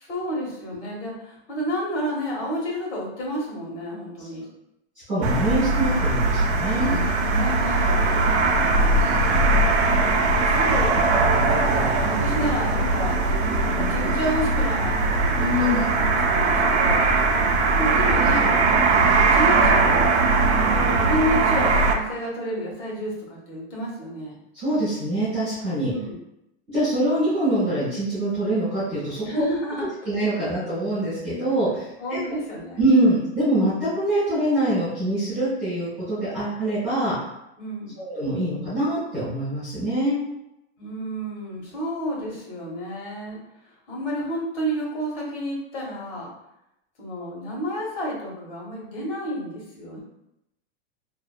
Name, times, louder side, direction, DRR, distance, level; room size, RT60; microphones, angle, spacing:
voice 1, 0.0-4.5 6.8-9.0 9.8-11.1 11.5-13.2 13.6-15.9 16.3-17.1 17.8-18.7 19.2-20.1 20.5-24.4 25.9-26.2 29.2-29.9 30.4-30.5 32.0-32.8 37.6-38.0 40.8-43.4 43.9-46.3 47.0-50.0, equal, 80° left, -3 dB, 1.3 m, -30 dB
voice 2, 5.1-6.9 9.3-9.5 15.4-15.8 24.5-25.9 26.7-29.4 30.1-32.2 32.8-37.1 38.0-40.2, right 1 dB, 5° right, -15 dB, 0.4 m, -24 dB
sound 1, 5.2-21.9, right 3 dB, 70° right, 0.5 m, -20 dB
sound 2, 5.7-10.7, left 5 dB, 45° left, 0.5 m, -40 dB
2.8 x 2.1 x 2.4 m, 0.86 s
supercardioid pair, 180°, 34 cm